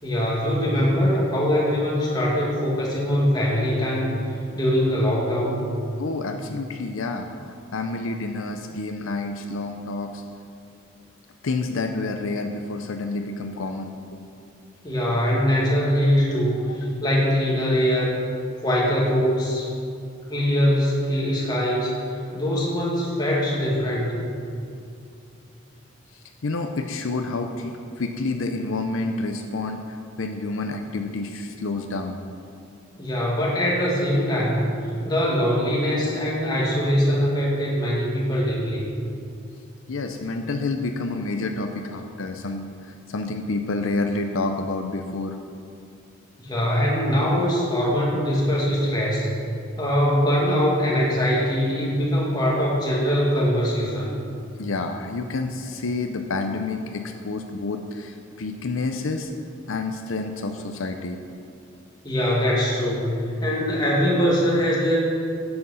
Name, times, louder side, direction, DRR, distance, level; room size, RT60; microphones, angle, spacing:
voice 1, 0.0-4.1 4.5-5.6 14.8-18.1 18.6-19.7 20.3-21.9 22.3-24.2 33.0-34.7 35.0-38.8 46.4-49.3 49.8-54.2 62.0-65.0, equal, 20° left, -5 dB, 2.1 m, -22 dB
voice 2, 6.0-7.3 7.7-10.2 11.4-14.2 16.7-16.8 23.9-24.2 26.4-32.2 33.6-33.7 39.9-45.4 54.6-59.3 59.7-61.2, left 3 dB, 75° left, 5 dB, 0.6 m, -29 dB
9.5 x 7.8 x 5.6 m, 2.5 s
head